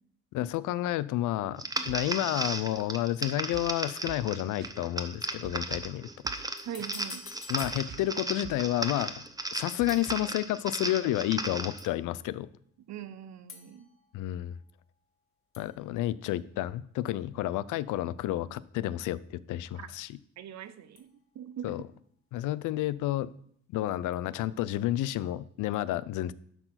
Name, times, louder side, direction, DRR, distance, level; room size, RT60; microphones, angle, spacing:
voice 1, 0.3-6.1 7.5-9.1 9.5-12.5 14.1-14.6 15.6-20.2 21.6-21.8 22.3-23.3 23.7-26.3, left 14 dB, 85° left, 18 dB, 0.5 m, -30 dB
sound 1, 1.6-11.9, right 2 dB, 10° right, 0.8 m, -36 dB
sound 2, 1.9-2.1 2.4-2.6 3.5-3.8 4.1-4.4 4.6-4.7 5.4-6.0 6.2-6.5 6.8-6.9 7.6-8.2 8.4-8.7 9.0-9.1 9.8-10.3, right 10 dB, 35° right, 0.5 m, -47 dB
sound 3, 6.3-8.5 9.9-10.6 11.8-12.3 13.5-15.3 15.5-16.7 21.0-21.7 24.1-24.8 25.7-25.8, left 5 dB, 45° left, 1.5 m, -51 dB
voice 2, 6.6-7.3 12.8-13.9 19.7-19.9 20.4-21.8, right 9 dB, 65° right, 13 dB, 0.8 m, -42 dB
12.0 x 4.6 x 5.8 m, 0.65 s
cardioid pair, 90°, 30 cm